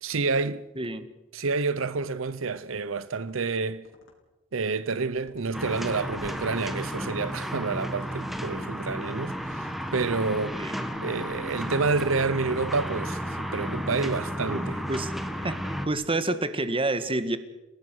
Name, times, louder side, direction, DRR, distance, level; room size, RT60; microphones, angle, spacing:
voice 1, 0.0-0.6 1.3-3.9 4.5-10.6 11.0-14.8, right 4 dB, 75° right, 0.8 m, -29 dB
voice 2, 0.7-1.1 10.5-10.9 14.5-14.6 14.9-15.1 15.4-17.4, right 2 dB, 25° right, 1.7 m, -29 dB
sound 1, 1.7-1.9 2.3-2.6 3.1-3.4 3.8-4.1 5.2-5.6 6.1-6.5 7.0-7.4 8.0-8.4 9.6-10.0 10.4-10.7 11.1-11.4 11.9-12.2 13.2-13.5 13.9-14.2 14.6-15.0 15.4-15.8, left 1 dB, 70° left, 4.9 m, -53 dB
sound 2, 5.5-15.9, equal, ahead, 1.8 m, -33 dB
29.5 x 18.0 x 6.3 m
head